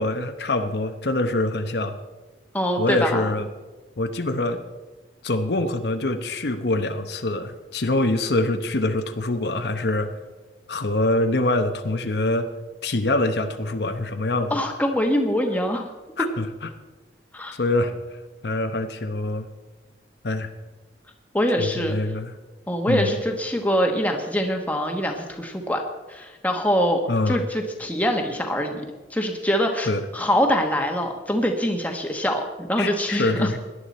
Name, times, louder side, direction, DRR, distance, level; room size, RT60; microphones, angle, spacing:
voice 1, 0.0-2.0 2.8-3.5 4.0-4.6 5.2-10.2 10.7-12.5 12.8-14.6 16.2-16.5 17.5-17.9 18.4-19.5 20.2-20.5 21.6-22.3 22.9-23.2 27.1-27.4 29.8-30.0 32.8-33.6, left 2 dB, 65° left, 7 dB, 0.9 m, -24 dB
voice 2, 2.5-3.3 14.5-15.9 16.2-16.3 17.3-17.6 21.3-22.0 22.7-25.8 26.1-27.0 27.3-28.8 29.1-33.5, equal, 10° left, 2 dB, 1.3 m, -24 dB
17.5 x 11.0 x 4.3 m, 1.2 s
head